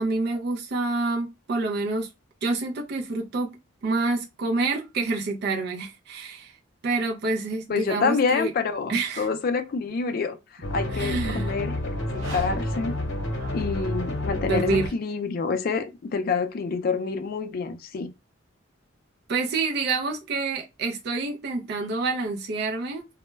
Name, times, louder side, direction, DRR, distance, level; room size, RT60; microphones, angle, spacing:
voice 1, 0.0-2.1 2.4-3.5 3.8-6.6 6.8-8.5 8.9-9.3 10.9-11.5 13.4-13.6 14.4-14.9 19.3-23.1, right 3 dB, 55° right, 0.4 m, -27 dB
voice 2, 7.7-12.9 13.5-18.1, left 5 dB, 50° left, 0.3 m, -27 dB
sound 1, 10.6-14.9, left 1 dB, 65° left, 0.8 m, -29 dB
sound 2, 12.0-14.1, right 1 dB, 80° right, 0.8 m, -41 dB
2.1 x 2.0 x 3.2 m
head